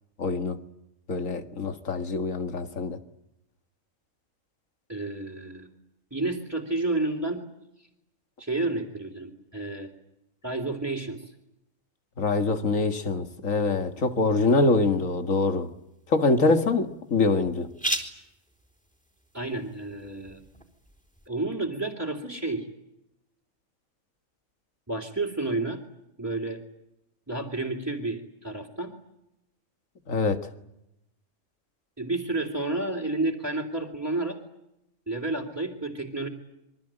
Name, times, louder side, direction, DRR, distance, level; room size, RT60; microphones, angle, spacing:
voice 1, 0.2-0.6 1.1-3.0 12.2-15.7 16.1-17.7 30.1-30.5, left 3 dB, 80° left, 2.3 m, -24 dB
voice 2, 4.9-5.7 6.1-7.4 7.8-7.9 8.4-9.9 10.4-11.3 19.3-20.4 21.3-22.7 24.9-25.8 26.2-26.6 27.3-28.9 32.0-34.4 35.1-36.3, right 2 dB, 10° right, 3.3 m, -30 dB
sound 1, 13.8-21.3, right 1 dB, 5° left, 4.0 m, -40 dB
27.5 x 24.0 x 9.0 m
omnidirectional pair, 1.4 m